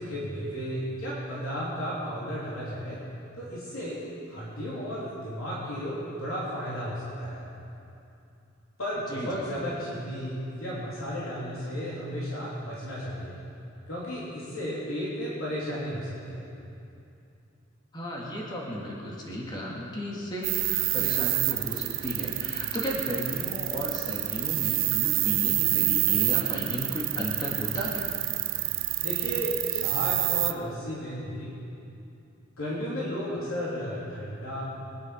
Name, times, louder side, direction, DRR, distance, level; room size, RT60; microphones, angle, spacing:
voice 1, 0.0-3.0 3.3-4.0 4.3-7.4 8.8-13.3 13.9-16.4 29.0-31.5 32.6-34.6, equal, 80° left, -8 dB, 3.4 m, -34 dB
voice 2, 9.1-9.6 17.9-28.1, equal, 20° left, -3 dB, 2.0 m, -34 dB
sound 1, 20.4-30.5, right 17 dB, 70° right, 0.6 m, -28 dB
22.5 x 10.5 x 5.2 m, 2.7 s
head